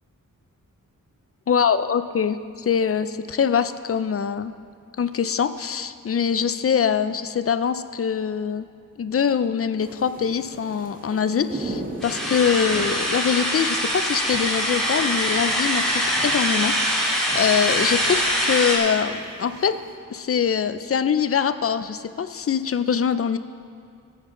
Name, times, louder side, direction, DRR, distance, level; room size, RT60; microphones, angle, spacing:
voice 1, 1.5-4.5 5.0-8.7 9.0-19.8 20.1-23.4, left 7 dB, 45° left, 12 dB, 0.4 m, -23 dB
sound 1, 9.8-20.0, right 2 dB, 25° right, 1.5 m, -39 dB
sound 2, 12.0-18.8, equal, ahead, 2.8 m, -23 dB
16.5 x 8.8 x 3.8 m, 2.3 s
wide cardioid pair, 125°, 33 cm